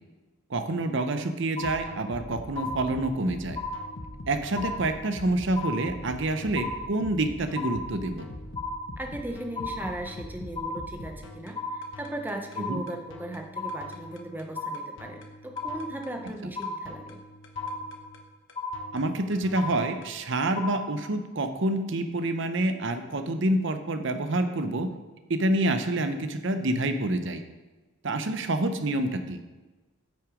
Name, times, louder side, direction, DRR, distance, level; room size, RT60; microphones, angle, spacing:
voice 1, 0.5-3.6 4.3-8.3 12.6-12.8 18.9-24.9 25.3-27.4 28.0-29.4, right 2 dB, 60° right, 8 dB, 0.7 m, -27 dB
sound 1, 1.6-20.1, left 1 dB, 60° left, 1.0 m, -43 dB
sound 2, 1.6-2.2 2.6-3.2 3.6-4.2 4.6-5.2 5.6-6.2 6.6-7.2 7.6-8.2 8.6-9.2 9.6-10.2 10.6-11.2 11.6-12.2 12.6-13.2 13.5-14.2 14.5-15.2 15.6-16.2 16.6-17.2 17.6-18.2 18.6-19.2 19.6-20.2 20.6-21.2, left 2 dB, 25° left, 1.3 m, -35 dB
voice 2, 9.0-17.2, right 1 dB, 10° right, 3 dB, 0.7 m, -37 dB
8.7 x 6.1 x 4.9 m, 1.2 s
head